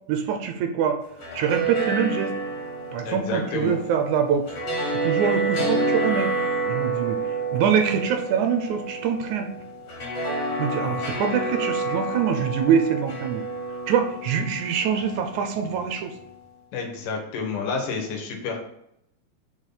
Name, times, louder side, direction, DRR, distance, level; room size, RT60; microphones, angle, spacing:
voice 1, 0.1-1.0 1.3-2.3 2.9-4.5 5.0-6.3 6.7-9.5 10.6-13.4 13.9-16.1, right 7 dB, 75° right, 5 dB, 1.9 m, -24 dB
sound 1, 1.0-16.2, right 3 dB, 45° left, 2.0 m, -29 dB
voice 2, 3.0-3.8 16.7-18.6, left 5 dB, 80° left, 3 dB, 2.8 m, -29 dB
5.4 x 4.9 x 5.5 m, 0.78 s
omnidirectional pair, 3.7 m